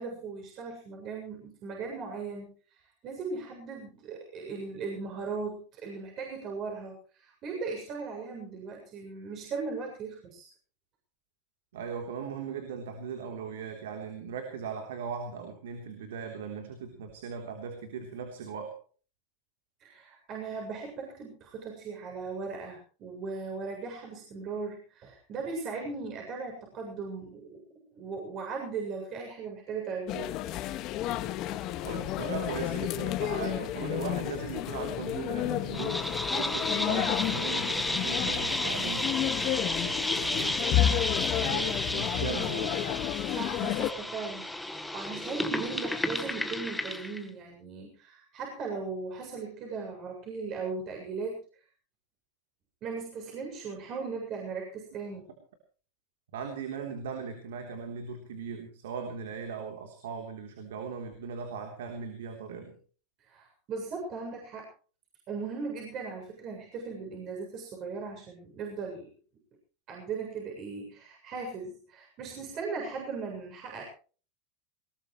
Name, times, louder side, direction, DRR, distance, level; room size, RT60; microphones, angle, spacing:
voice 1, 0.0-2.5 3.0-10.5 19.8-27.6 27.9-30.3 43.3-51.4 52.8-55.3 63.2-64.7 65.3-69.1 69.9-73.8, right 4 dB, 45° right, 0 dB, 7.4 m, -38 dB
voice 2, 11.7-18.8 31.8-39.2 39.8-40.7 41.3-43.0 56.3-62.8, right 6 dB, 85° right, 4 dB, 3.5 m, -39 dB
sound 1, 30.1-43.9, left 13 dB, 50° left, 1.7 m, -31 dB
sound 2, 35.7-47.2, left 1 dB, 5° left, 1.5 m, -32 dB
20.5 x 20.0 x 3.2 m, 0.39 s
supercardioid pair, 120°, 0 cm